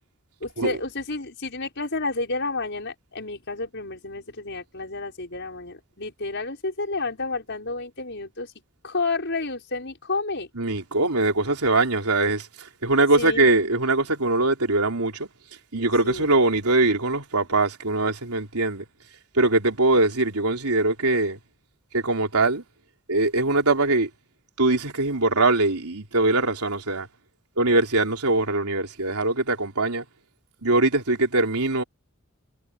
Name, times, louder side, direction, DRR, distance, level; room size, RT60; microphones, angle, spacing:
voice 1, 0.4-8.5 8.8-10.5 13.2-13.7 16.0-16.4, left 3 dB, 55° left, 6.1 m, -30 dB
voice 2, 10.6-12.5 12.8-15.3 15.7-18.8 19.4-21.4 21.9-22.6 23.1-24.1 24.6-27.1 27.6-30.0 30.6-31.8, right 2 dB, 90° right, 3.8 m, -22 dB
head